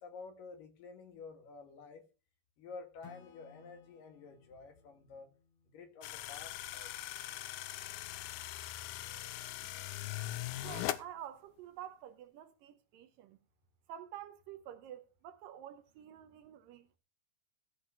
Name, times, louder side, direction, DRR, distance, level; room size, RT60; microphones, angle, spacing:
voice 1, 0.0-2.0 2.6-5.3 5.7-6.9, left 4 dB, 65° left, 3.3 m, -50 dB
Acoustic guitar / Strum, 3.0-6.6, left 6 dB, 50° left, 1.7 m, -61 dB
sound 1, 6.0-11.0, left 14 dB, 80° left, 2.5 m, -41 dB
voice 2, 10.6-13.4 13.9-17.0, right 10 dB, 75° right, 2.3 m, -49 dB
14.5 x 5.0 x 6.6 m
omnidirectional pair, 4.3 m